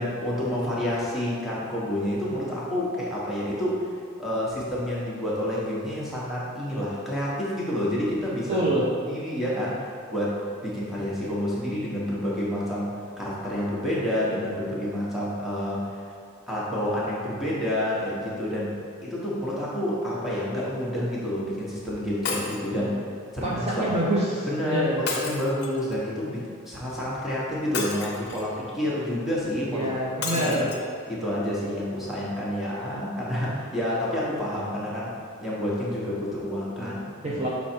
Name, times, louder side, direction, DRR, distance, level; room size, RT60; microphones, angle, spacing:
voice 1, 0.0-3.9 4.2-8.6 9.1-16.0 16.5-18.7 19.0-22.9 23.3-24.0 24.5-30.0 30.3-30.6 31.1-37.5, left 1 dB, ahead, -8 dB, 1.2 m, -29 dB
voice 2, 8.5-8.9 22.7-22.9 23.4-25.0 29.7-30.7 36.8-37.0 37.2-37.5, right 1 dB, 30° right, -6 dB, 0.7 m, -26 dB
Shatter, 22.2-22.7 25.1-25.9 27.7-28.5 30.2-30.8 31.4-31.5 31.8-31.9, left 4 dB, 50° left, 0.8 m, -32 dB
6.2 x 4.1 x 4.5 m, 2.2 s
head